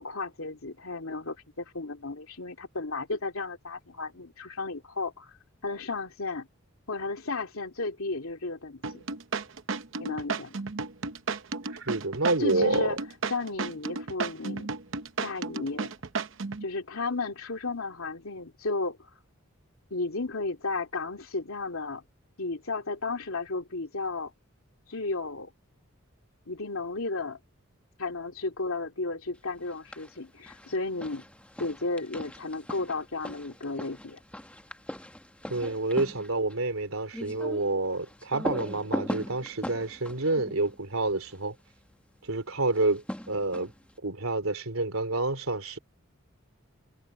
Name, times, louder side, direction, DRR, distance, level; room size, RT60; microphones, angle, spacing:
voice 1, 0.0-5.3 5.6-6.5 6.9-9.0 10.0-10.6 12.4-13.0 13.3-14.7 15.2-15.9 16.6-19.0 19.9-22.0 22.4-24.3 24.9-25.5 26.5-27.4 28.0-31.2 31.6-34.2, left 3 dB, 80° left, 2.7 m, -33 dB
sound 1, 8.8-16.6, right 4 dB, 65° right, 0.8 m, -33 dB
voice 2, 11.7-13.0 35.5-41.5 42.2-43.7 44.0-45.8, right 2 dB, 80° right, 3.1 m, -28 dB
sound 2, 29.6-30.2 30.5-41.5 42.7-43.9, equal, 5° left, 1.2 m, -40 dB
head